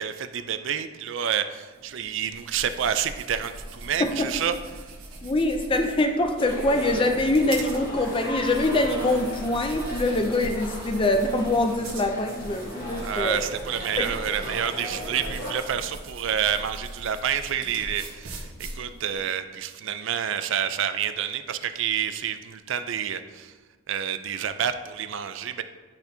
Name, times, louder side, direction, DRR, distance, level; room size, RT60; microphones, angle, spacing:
voice 1, 0.0-4.9 13.0-23.5 23.9-25.6, right 8 dB, 60° right, 10 dB, 0.4 m, -29 dB
sound 1, 1.7-19.2, right 1 dB, 85° right, 1.3 m, -40 dB
voice 2, 5.2-13.4 14.0-14.1, left 2 dB, 25° left, 5 dB, 0.4 m, -24 dB
sound 2, 6.4-15.6, equal, 40° left, 1.1 m, -37 dB
10.5 x 4.3 x 2.7 m, 1.4 s
head